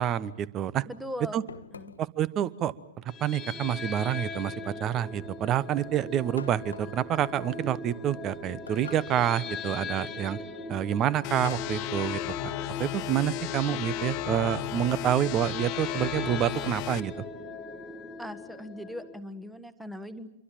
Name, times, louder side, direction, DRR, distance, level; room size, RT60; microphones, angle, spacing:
voice 1, 0.0-0.8 1.3-1.4 2.0-2.7 3.2-10.4 10.7-12.5 12.8-17.2, right 11 dB, 30° right, 20 dB, 1.0 m, -28 dB
voice 2, 0.8-1.4 1.7-1.9 18.2-20.3, equal, ahead, 13 dB, 1.5 m, -39 dB
sound 1, 1.5-2.2 3.6-4.3 6.4-7.1 8.7-9.4 11.4-11.9, left 5 dB, 75° left, 1.1 m, -45 dB
sound 2, 3.1-19.2, left 3 dB, 15° left, 1.7 m, -40 dB
sound 3, 11.2-17.0, left 17 dB, 40° left, 1.0 m, -34 dB
27.5 x 23.0 x 7.6 m, 0.87 s
figure-of-eight pair, 105°, 0 cm